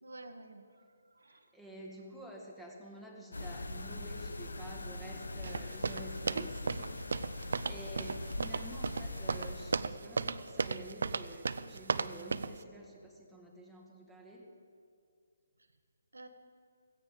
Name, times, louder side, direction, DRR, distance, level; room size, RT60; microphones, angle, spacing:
voice 1, 0.0-0.8 1.1-1.5 6.3-6.5 8.0-8.2 16.1-16.3, right 3 dB, 90° right, 6 dB, 1.3 m, -48 dB
voice 2, 1.3-6.9 7.3-14.5, right 1 dB, ahead, -3 dB, 1.9 m, -49 dB
sound 1, 3.3-10.0, left 2 dB, 85° left, 1.1 m, -42 dB
sound 2, 5.4-12.6, right 4 dB, 70° right, 0.5 m, -35 dB
16.5 x 15.5 x 3.9 m, 2.3 s
figure-of-eight pair, 150°, 0 cm